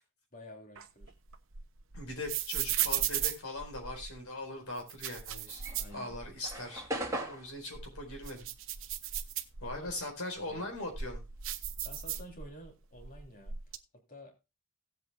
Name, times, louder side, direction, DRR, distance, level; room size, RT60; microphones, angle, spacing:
voice 1, 0.3-1.1 5.7-6.1 9.6-9.9 10.4-10.7 11.8-14.4, equal, 40° left, 2 dB, 3.0 m, -51 dB
sound 1, 0.7-4.2 4.8-6.6 6.9-7.0 7.6-9.9 10.5-12.7 13.0-13.8, right 10 dB, 65° right, 1.0 m, -36 dB
voice 2, 1.9-6.9 7.3-8.5 9.6-11.2, left 2 dB, 75° left, 3 dB, 4.4 m, -40 dB
sound 2, 5.5-10.2 10.5-12.5, right 1 dB, 15° right, 2.5 m, -41 dB
17.5 x 8.1 x 2.3 m, 0.25 s
head